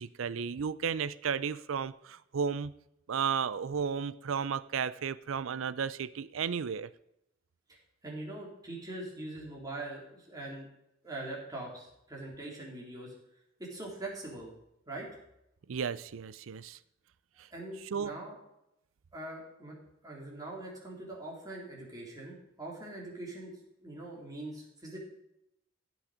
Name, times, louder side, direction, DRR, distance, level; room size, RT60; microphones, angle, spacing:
voice 1, 0.0-2.7 3.1-6.9 15.7-16.8 17.8-18.1, right 6 dB, 90° right, 17 dB, 0.5 m, -33 dB
voice 2, 7.7-10.7 11.0-13.1 13.6-14.5 14.9-15.1 17.5-18.4 19.1-19.8 20.0-23.5 23.8-25.0, right 2 dB, 20° right, -3 dB, 3.5 m, -42 dB
16.0 x 6.3 x 5.0 m, 0.82 s
head